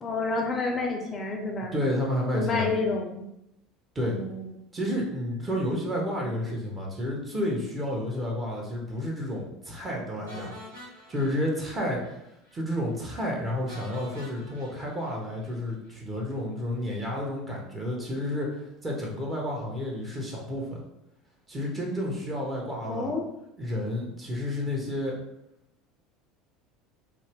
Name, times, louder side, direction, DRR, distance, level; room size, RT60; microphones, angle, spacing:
voice 1, 0.0-1.7 2.3-3.3 4.0-4.5 22.9-23.2, left 3 dB, 30° left, 2 dB, 0.5 m, -29 dB
voice 2, 1.7-2.7 3.9-4.2 4.7-10.5 11.1-12.2 12.5-20.8 21.5-23.1 23.6-25.1, left 1 dB, 25° right, -2 dB, 1.0 m, -31 dB
sound 1, 10.3-12.2 12.4-12.6 12.9-13.0 13.7-16.0, left 1 dB, 80° right, 1.1 m, -47 dB
2.6 x 2.1 x 3.5 m, 0.83 s
figure-of-eight pair, 70°, 0 cm